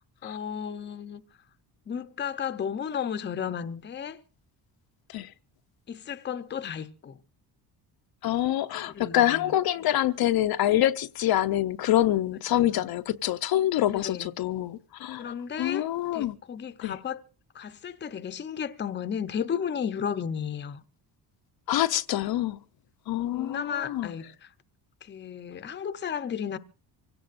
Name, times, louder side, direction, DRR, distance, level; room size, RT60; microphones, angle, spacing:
voice 1, 0.2-1.2 1.9-4.2 5.9-7.2 8.9-9.5 12.5-12.6 13.9-14.3 15.2-15.9 16.1-17.2 17.5-20.8 23.3-24.3 25.1-26.6, left 7 dB, 25° left, 0.7 m, -33 dB
voice 2, 8.2-16.4 16.8-17.0 21.7-22.6 23.1-24.1, left 13 dB, 60° left, 0.7 m, -26 dB
25.5 x 17.0 x 2.5 m
cardioid pair, 145°, 42 cm